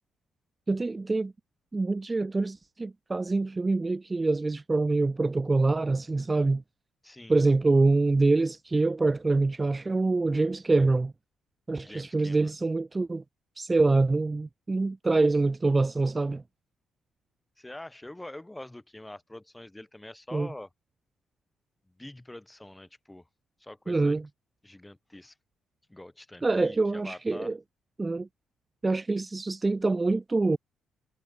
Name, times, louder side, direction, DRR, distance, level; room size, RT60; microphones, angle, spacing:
voice 1, 0.7-1.3 1.7-6.6 7.3-11.1 11.7-13.2 13.6-16.4 20.3-20.5 23.9-24.2 26.4-27.6 28.0-28.3 28.8-30.6, right 3 dB, 20° right, 0.4 m, -25 dB
voice 2, 7.0-7.4 11.8-12.5 17.6-20.7 22.0-23.3 23.6-24.2 24.6-25.3 25.9-27.5, left 1 dB, 10° left, 3.5 m, -45 dB
cardioid pair, 90°, 0 cm